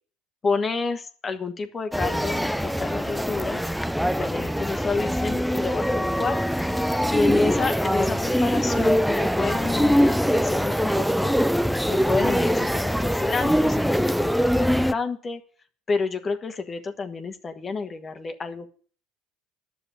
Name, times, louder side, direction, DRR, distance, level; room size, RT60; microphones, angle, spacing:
voice 1, 0.4-3.6 4.1-6.4 7.1-11.3 11.9-14.3 14.6-15.4 15.9-18.7, left 4 dB, 30° left, 7 dB, 1.5 m, -29 dB
sound 1, 1.9-14.9, equal, ahead, 0.5 m, -23 dB
10.0 x 6.8 x 8.6 m, 0.43 s
hypercardioid pair, 80°, 0 cm